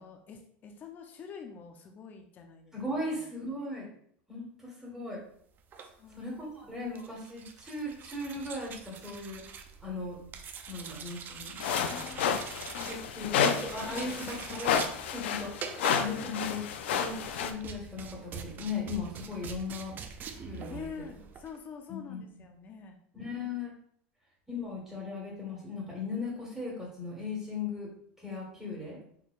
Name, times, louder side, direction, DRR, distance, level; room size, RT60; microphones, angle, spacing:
voice 1, 0.0-3.2 5.8-6.3 6.6-6.8 11.9-12.3 12.7-13.3 13.9-14.8 20.5-23.0, left 6 dB, 30° left, 5 dB, 0.5 m, -47 dB
voice 2, 2.7-3.9 4.3-5.2 6.2-9.4 9.8-10.2 10.7-12.0 12.3-12.4 12.9-14.8 15.1-20.0 20.4-20.9 21.9-22.2 23.1-23.7 24.5-27.9 28.2-29.0, left 3 dB, 5° right, -5 dB, 1.5 m, -37 dB
sound 1, 5.6-21.6, right 6 dB, 30° right, 0.4 m, -45 dB
sound 2, 11.6-17.5, left 7 dB, 90° left, 0.4 m, -31 dB
4.4 x 3.7 x 2.4 m, 0.65 s
supercardioid pair, 130°, 6 cm